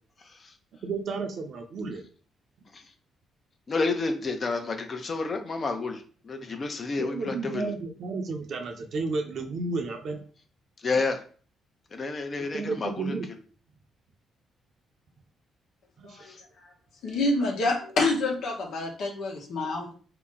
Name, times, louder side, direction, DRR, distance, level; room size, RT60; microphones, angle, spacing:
voice 1, 0.8-2.0 7.0-10.2 12.5-13.3 16.0-16.2, right 4 dB, 65° right, 4 dB, 0.8 m, -32 dB
voice 2, 3.7-7.7 10.8-11.2 11.9-13.1 16.1-16.4, left 3 dB, 40° left, 5 dB, 0.8 m, -30 dB
voice 3, 17.0-19.9, left 2 dB, 75° left, 1 dB, 1.2 m, -27 dB
4.1 x 2.9 x 3.8 m, 0.42 s
cardioid pair, 90°, 0 cm